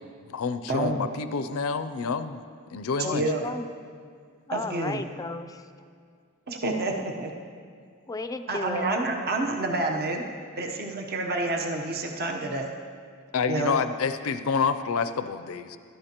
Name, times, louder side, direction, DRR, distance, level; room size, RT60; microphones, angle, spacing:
voice 1, 0.0-2.4 2.7-3.2 13.3-15.8, left 5 dB, 75° left, 10 dB, 0.5 m, -28 dB
voice 2, 0.7-1.1 3.1-3.4 4.5-5.0 6.5-7.3 8.5-10.2 10.6-12.7 13.5-13.8, right 2 dB, 45° right, 2 dB, 0.9 m, -28 dB
voice 3, 3.0-3.7 4.5-5.7 8.1-8.9, left 3 dB, 15° left, 9 dB, 0.4 m, -34 dB
16.5 x 12.5 x 2.9 m, 2.2 s
head